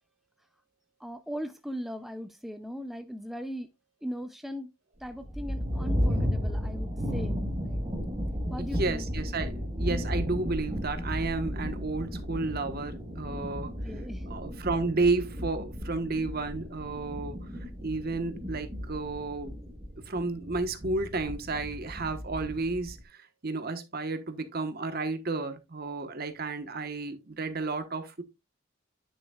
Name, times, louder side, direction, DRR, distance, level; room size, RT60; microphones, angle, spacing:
voice 1, 1.0-3.7 4.0-4.7 5.0-7.9 8.5-9.1 13.8-14.3, equal, ahead, 0.4 m, -39 dB
sound 1, 5.0-23.0, equal, 25° right, 1.2 m, -34 dB
voice 2, 8.6-13.7 14.3-17.4 17.8-19.6 20.1-28.2, right 3 dB, 50° right, 1.2 m, -32 dB
10.0 x 6.3 x 2.3 m
head